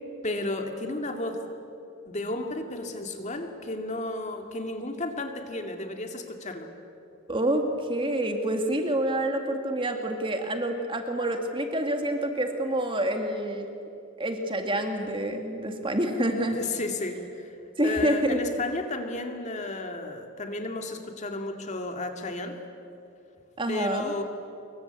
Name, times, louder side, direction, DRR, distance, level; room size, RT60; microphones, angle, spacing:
voice 1, 0.2-1.4 2.1-6.7 16.5-17.6 17.8-22.6 23.7-24.2, left 2 dB, 35° left, 5 dB, 2.3 m, -33 dB
voice 2, 7.3-13.7 14.2-16.6 17.8-18.4 23.6-24.1, right 1 dB, 25° right, 4 dB, 2.2 m, -27 dB
26.0 x 23.0 x 8.3 m, 2.7 s
head